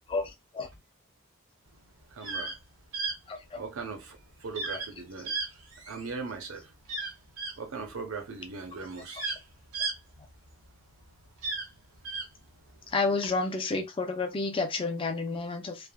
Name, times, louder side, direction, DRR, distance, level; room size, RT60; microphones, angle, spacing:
voice 1, 0.1-0.7 3.3-3.6 12.9-15.9, left 3 dB, 25° left, 0.4 m, -30 dB
voice 2, 2.1-2.6 3.6-5.3 5.9-6.7 7.6-9.2, right 4 dB, 65° right, 0.6 m, -39 dB
sound 1, 2.1-2.6 2.9-3.2 4.6-4.9 5.3-6.1 6.9-7.6 8.5-8.6 8.9-10.7 11.3-12.3, right 3 dB, 85° right, 1.0 m, -34 dB
3.3 x 2.1 x 2.2 m
head